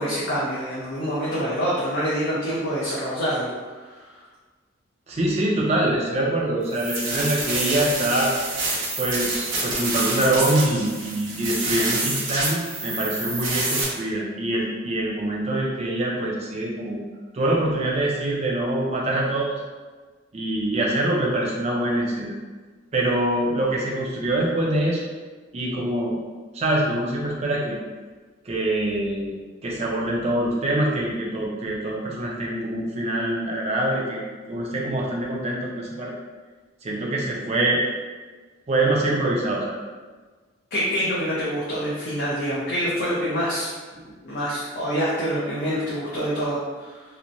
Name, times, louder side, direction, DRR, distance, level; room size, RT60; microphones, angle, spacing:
voice 1, 0.0-3.5 3.9-4.0 40.7-43.7 44.2-47.0, equal, 50° left, -9 dB, 0.6 m, -26 dB
voice 2, 5.1-8.3 9.0-17.0 17.3-19.5 20.3-22.3 22.9-25.1 25.5-26.2 26.5-27.8 28.5-29.4 29.6-36.1 36.8-37.8 38.7-39.8 44.0-44.1, right 1 dB, 30° right, -3 dB, 0.4 m, -24 dB
sound 1, 6.7-13.8, right 2 dB, 75° right, 0.8 m, -27 dB
2.9 x 2.1 x 2.5 m, 1.4 s
head